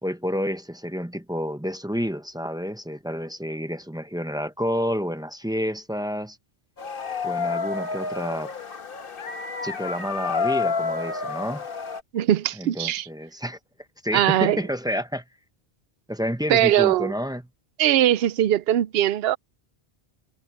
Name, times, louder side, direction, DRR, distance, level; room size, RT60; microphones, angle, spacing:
voice 1, 0.0-6.4 7.2-8.5 9.6-11.6 12.6-13.6 14.0-15.2 16.1-17.4, equal, 5° right, 0.8 m, -29 dB
sound 1, 6.8-12.0, left 4 dB, 60° left, 1.5 m, -29 dB
voice 2, 12.1-13.1 14.1-14.6 16.5-17.1 17.8-19.4, right 12 dB, 75° right, 0.8 m, -20 dB
omnidirectional pair, 1.1 m